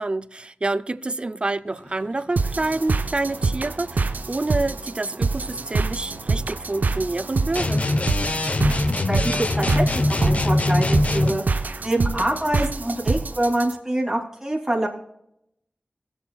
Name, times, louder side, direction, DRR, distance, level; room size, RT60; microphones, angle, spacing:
voice 1, 0.0-7.9, right 2 dB, 40° right, 0.5 m, -27 dB
sound 1, 1.5-11.1, left 1 dB, 70° left, 4.5 m, -45 dB
sound 2, 2.4-13.7, right 3 dB, 80° right, 0.7 m, -26 dB
sound 3, 7.5-11.4, left 2 dB, 55° left, 0.9 m, -22 dB
voice 2, 9.1-11.4 11.8-14.9, right 1 dB, 15° right, 2.9 m, -25 dB
19.0 x 7.9 x 2.3 m
wide cardioid pair, 70°, 3 cm